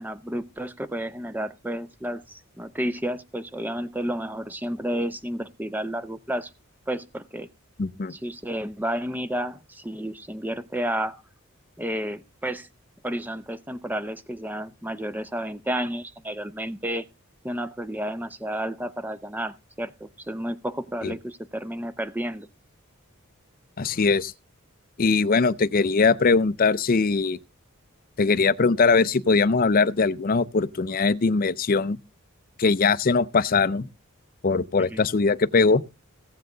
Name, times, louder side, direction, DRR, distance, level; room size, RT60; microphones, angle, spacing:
voice 1, 0.0-6.5 6.9-7.5 8.1-11.2 11.8-12.7 13.0-17.1 17.4-22.5 34.8-35.1, equal, 10° right, 0.6 m, -31 dB
voice 2, 7.8-8.1 21.0-21.1 23.8-24.3 25.0-27.4 28.2-32.0 32.6-33.9 34.4-35.8, left 4 dB, 40° left, 0.5 m, -21 dB
17.0 x 7.6 x 3.8 m
head